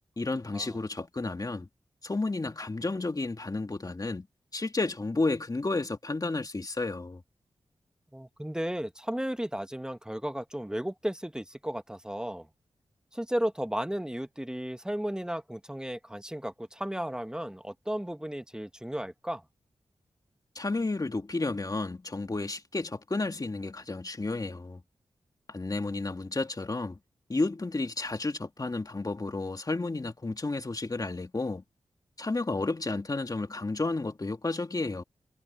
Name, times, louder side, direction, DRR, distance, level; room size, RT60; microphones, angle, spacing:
voice 1, 0.2-1.7 2.0-4.3 4.5-7.2 20.5-24.8 25.5-27.0 27.3-31.6 32.2-35.0, left 3 dB, 35° left, 2.6 m, -32 dB
voice 2, 8.1-12.5 13.1-19.4, equal, 5° right, 1.4 m, -34 dB
cardioid pair, 50°, 10 cm